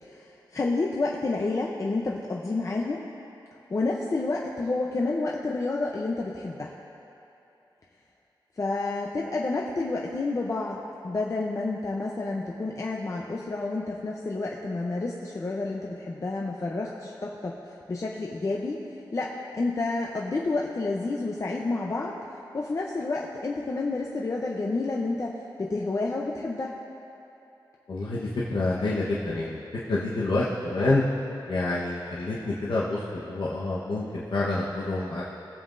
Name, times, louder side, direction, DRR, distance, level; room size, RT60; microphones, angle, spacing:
voice 1, 0.0-3.0 3.7-6.7 8.6-10.8 11.0-17.6 17.9-18.8 19.1-22.1 22.5-26.7, left 3 dB, 40° left, -2 dB, 0.7 m, -29 dB
voice 2, 27.9-29.6 29.9-31.0 31.5-35.2, left 2 dB, 85° left, -7 dB, 1.2 m, -27 dB
21.5 x 7.4 x 2.6 m, 2.8 s
wide cardioid pair, 140°, 8 cm